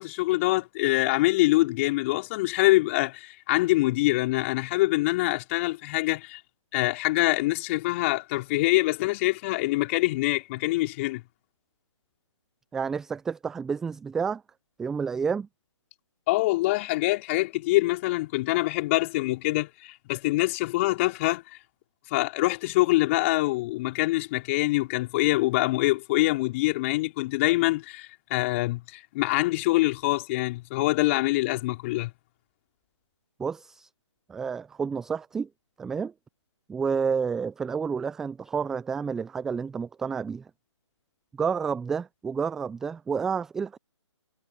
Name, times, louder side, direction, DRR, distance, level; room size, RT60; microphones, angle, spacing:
voice 1, 0.0-6.4 6.7-11.2 16.3-21.4 22.1-32.1, left 20 dB, 25° left, 4.5 m, -25 dB
voice 2, 12.7-14.4 14.8-15.5 33.4-33.9 34.3-35.5 35.8-36.1 36.7-40.5 41.4-43.8, right 6 dB, 5° right, 0.4 m, -30 dB
figure-of-eight pair, 145°, 16 cm